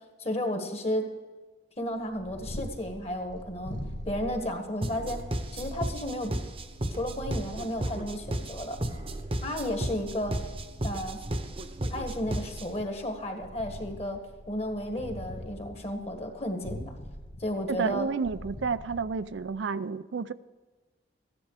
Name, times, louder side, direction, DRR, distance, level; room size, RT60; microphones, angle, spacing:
voice 1, 0.2-1.0 1.8-3.8 4.0-5.2 5.5-6.3 6.9-8.8 9.4-10.3 10.8-11.2 11.9-14.2 14.5-16.8 17.4-18.1, left 1 dB, 35° left, 5 dB, 1.6 m, -33 dB
Purr, 1.9-19.6, equal, 80° left, 1.6 m, -44 dB
sound 1, 4.8-12.8, right 1 dB, 30° right, 0.9 m, -34 dB
voice 2, 17.7-20.3, right 5 dB, 75° right, 14 dB, 0.5 m, -30 dB
14.5 x 10.5 x 4.9 m, 1.3 s
head